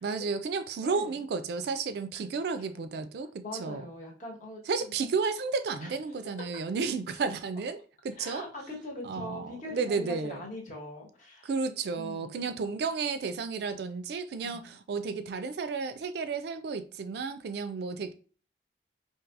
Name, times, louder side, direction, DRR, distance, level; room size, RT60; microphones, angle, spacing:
voice 1, 0.0-3.9 4.7-8.4 9.0-10.4 11.4-18.1, right 4 dB, 65° right, 0.3 m, -32 dB
voice 2, 0.8-1.2 2.1-2.2 2.7-2.9 3.4-4.6 5.8-5.9 8.2-11.5 11.9-12.5 14.4-14.7, left 1 dB, 45° left, 1.1 m, -42 dB
4.6 x 2.7 x 2.4 m
head